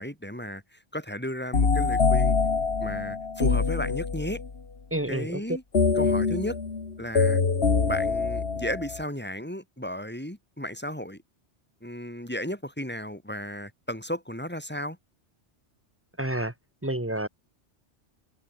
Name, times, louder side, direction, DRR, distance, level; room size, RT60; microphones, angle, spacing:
voice 1, 0.0-2.3 2.8-4.4 5.1-5.6 6.0-6.6 7.0-7.4 7.8-11.2 11.8-15.0, equal, 10° left, 4.3 m, -34 dB
sound 1, 1.5-4.5 5.7-9.0, left 4 dB, 60° left, 2.1 m, -24 dB
voice 2, 4.9-5.4 16.2-16.5 16.8-17.3, right 1 dB, 10° right, 2.0 m, -29 dB
omnidirectional pair, 1.2 m